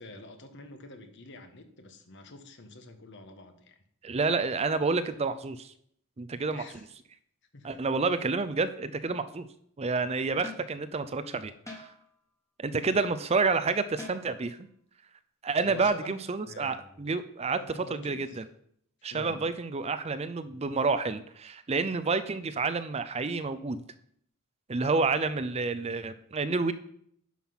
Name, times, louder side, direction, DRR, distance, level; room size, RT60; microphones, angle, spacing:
voice 1, 0.0-3.8 6.5-6.9 7.5-7.8 12.8-13.1 15.6-16.2 16.4-17.1 17.6-18.4 19.1-19.4, left 2 dB, 55° left, 7 dB, 1.2 m, -47 dB
voice 2, 4.0-5.7 6.2-6.6 7.6-9.5 9.8-11.9 12.6-14.7 15.4-17.6 17.9-18.5 19.0-23.8 24.7-26.7, right 4 dB, 30° right, 12 dB, 0.5 m, -29 dB
sound 1, 9.0-9.4 10.4-10.8 11.7-12.2 14.0-14.5 15.8-15.9, left 2 dB, 15° left, 1.6 m, -45 dB
10.0 x 5.9 x 5.7 m, 0.66 s
head